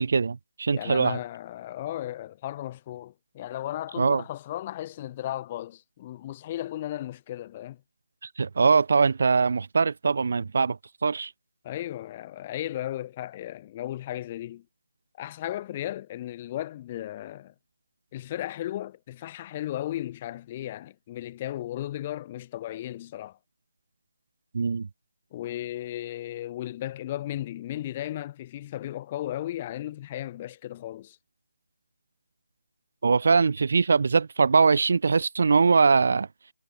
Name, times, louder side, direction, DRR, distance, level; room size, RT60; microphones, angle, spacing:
voice 1, 0.0-1.2 4.0-4.2 8.4-11.3 24.5-24.9 33.0-36.3, right 4 dB, 55° right, 2.5 m, -22 dB
voice 2, 0.7-7.8 11.6-14.6 15.2-17.5 18.1-23.4 25.3-31.2, left 13 dB, 20° left, 3.7 m, -35 dB
hypercardioid pair, 170°, 0 cm